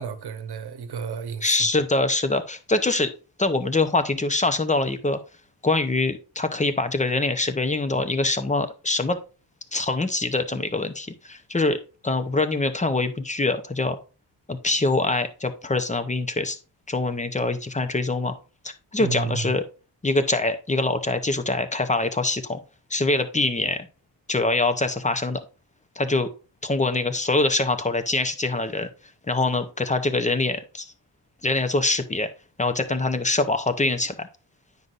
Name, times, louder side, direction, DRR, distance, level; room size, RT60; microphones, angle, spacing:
voice 1, 0.0-1.7 19.0-19.5, right 5 dB, 55° right, 1.0 m, -31 dB
voice 2, 1.4-3.1 3.4-5.2 5.6-9.2 9.7-11.8 12.0-14.0 14.5-16.6 16.9-18.3 18.6-19.6 20.0-22.6 22.9-23.9 24.3-25.4 26.0-26.3 26.6-28.9 29.3-30.9 31.4-32.3 32.6-34.3, left 2 dB, 15° left, 0.6 m, -24 dB
9.4 x 5.4 x 2.5 m
wide cardioid pair, 120°, 46 cm